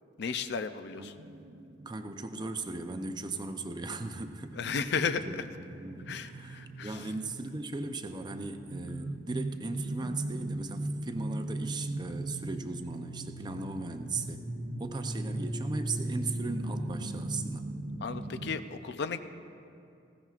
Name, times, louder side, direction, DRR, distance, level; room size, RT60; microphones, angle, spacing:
voice 1, 0.2-1.1 4.5-5.5 6.1-7.1 18.0-19.2, left 5 dB, 60° left, 10 dB, 0.5 m, -34 dB
sound 1, 1.2-18.6, right 1 dB, 70° right, 0.8 m, -39 dB
voice 2, 1.8-4.6 5.0-14.4 14.8-17.7, right 3 dB, 25° right, 7 dB, 0.6 m, -38 dB
19.5 x 15.5 x 2.4 m, 2.5 s
head